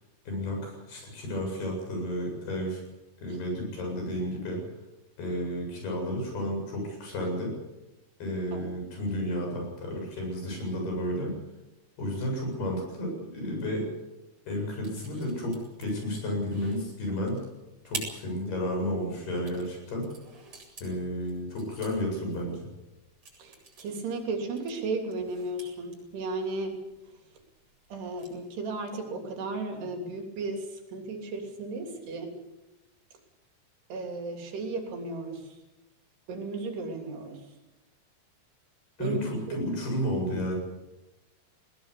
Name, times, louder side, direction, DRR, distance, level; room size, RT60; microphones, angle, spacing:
voice 1, 0.3-2.8 3.2-4.6 5.2-7.5 8.2-11.3 12.0-13.9 14.5-17.4 17.8-20.1 20.8-22.6 39.0-40.6, equal, 75° left, 1 dB, 9.7 m, -32 dB
sound 1, 14.8-28.5, right 3 dB, 30° right, 8.7 m, -47 dB
voice 2, 23.4-26.8 27.9-32.3 33.9-35.4 36.3-37.4 39.0-39.2 39.5-39.6, right 3 dB, 90° right, 4 dB, 5.3 m, -34 dB
21.0 x 19.5 x 8.4 m, 1.0 s
omnidirectional pair, 4.6 m